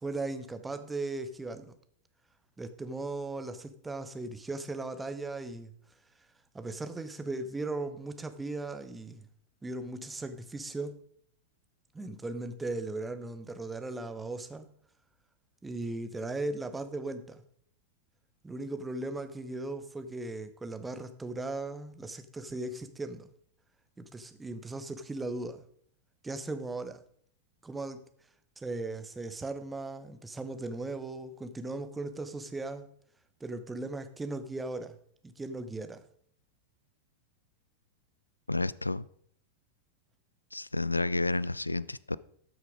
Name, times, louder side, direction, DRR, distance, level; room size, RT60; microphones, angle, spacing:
voice 1, 0.0-1.7 2.6-5.7 6.5-9.3 9.6-10.9 11.9-14.7 15.6-17.4 18.4-23.3 24.0-25.6 26.2-27.0 27.6-28.0 28.6-32.9 33.4-35.0 35.2-36.0, right 2 dB, 10° right, 1.0 m, -37 dB
voice 2, 38.5-39.1 40.5-42.2, left 2 dB, 85° left, 0.3 m, -30 dB
13.0 x 6.4 x 5.0 m
figure-of-eight pair, 90°, 0 cm